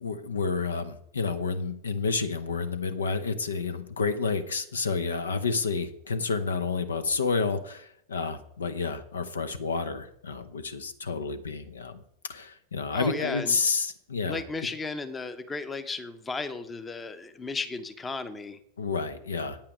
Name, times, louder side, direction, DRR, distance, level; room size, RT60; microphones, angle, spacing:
voice 1, 0.0-12.0 12.3-14.4 18.8-19.6, left 4 dB, 70° left, 11 dB, 0.8 m, -30 dB
voice 2, 12.9-13.5 14.2-18.6, left 3 dB, 15° left, 11 dB, 0.8 m, -34 dB
8.9 x 8.7 x 5.1 m, 0.71 s
figure-of-eight pair, 90°, 0 cm